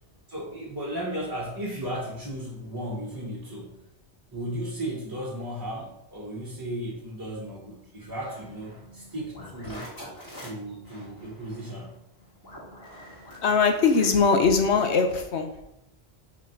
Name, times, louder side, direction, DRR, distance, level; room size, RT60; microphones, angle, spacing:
voice 1, 0.3-3.9 4.3-9.9 10.4-12.0, right 1 dB, 20° right, -6 dB, 1.2 m, -35 dB
sound 1, 8.0-15.3, equal, 20° left, 2.5 m, -46 dB
voice 2, 13.4-15.5, left 5 dB, 75° left, 5 dB, 1.2 m, -21 dB
5.8 x 4.4 x 5.8 m, 0.84 s
omnidirectional pair, 1.2 m